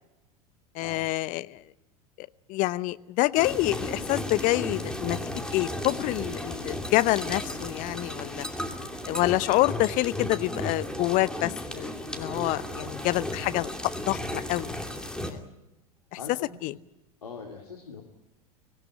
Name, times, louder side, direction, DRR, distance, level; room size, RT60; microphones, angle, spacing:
voice 1, 0.7-1.6 2.2-8.4 9.1-13.7 14.1-14.7 15.3-15.4 16.6-16.7, left 18 dB, 45° left, 16 dB, 0.8 m, -27 dB
sound 1, 3.4-15.3, left 1 dB, 5° left, 2.7 m, -35 dB
voice 2, 12.7-13.1 16.1-16.7 17.2-18.0, left 5 dB, 80° left, 1 dB, 2.5 m, -43 dB
25.0 x 16.5 x 9.6 m, 0.98 s
figure-of-eight pair, 80°, 19 cm